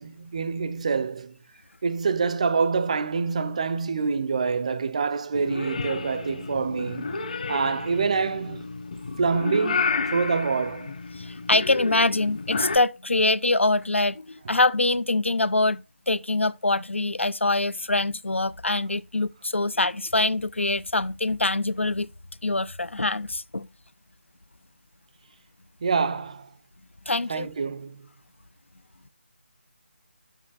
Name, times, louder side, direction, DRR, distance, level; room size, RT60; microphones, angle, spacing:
voice 1, 0.0-1.4 1.8-7.2 7.5-8.6 9.2-10.9 25.8-26.5 27.3-28.1, right 5 dB, 35° right, 0.5 m, -26 dB
Purr / Meow, 5.3-12.8, left 4 dB, 40° left, 1.3 m, -31 dB
voice 2, 11.2-22.1 22.4-23.7 27.1-27.5, left 2 dB, 85° left, 0.5 m, -24 dB
9.1 x 7.3 x 2.4 m
figure-of-eight pair, 155°, 6 cm